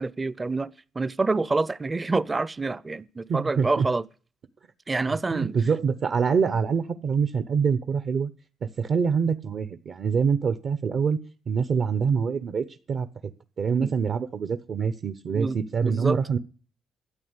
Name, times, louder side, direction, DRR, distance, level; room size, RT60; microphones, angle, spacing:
voice 1, 0.0-4.0 4.9-5.6 13.8-13.9 15.3-16.2, right 3 dB, 25° right, 0.6 m, -27 dB
voice 2, 3.3-3.9 5.1-8.3 8.6-11.2 11.5-13.1 13.6-16.4, right 6 dB, 55° right, 0.8 m, -25 dB
13.0 x 8.8 x 8.1 m
cardioid pair, 90°, 0 cm